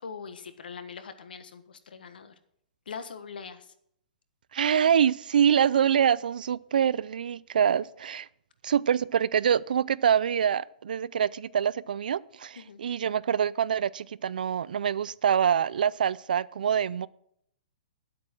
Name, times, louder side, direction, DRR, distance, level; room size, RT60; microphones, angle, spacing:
voice 1, 0.0-2.3 2.9-3.7 12.5-12.8, left 6 dB, 85° left, 10 dB, 1.3 m, -42 dB
voice 2, 4.5-8.3 8.6-17.1, right 8 dB, 70° right, 21 dB, 0.4 m, -25 dB
9.7 x 8.3 x 6.1 m, 0.71 s
hypercardioid pair, 175°, 5 cm